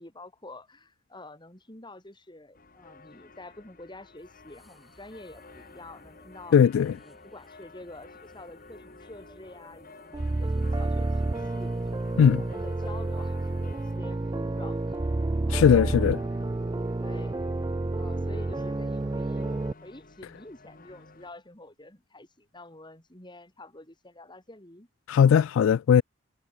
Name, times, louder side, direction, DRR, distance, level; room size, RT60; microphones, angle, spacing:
voice 1, 0.0-6.6 7.0-11.2 11.5-12.0 12.4-15.0 15.4-16.7 17.0-17.3 17.9-19.6 19.8-24.9, left 2 dB, 25° left, 4.5 m, -47 dB
sound 1, 2.5-21.3, left 3 dB, 45° left, 2.5 m, -52 dB
sound 2, 4.2-14.0, equal, ahead, 3.9 m, -61 dB
voice 2, 6.5-6.9 12.2-12.4 15.5-16.2 25.1-26.0, left 7 dB, 85° left, 0.3 m, -19 dB
sound 3, 10.1-19.7, right 2 dB, 20° right, 0.4 m, -29 dB
head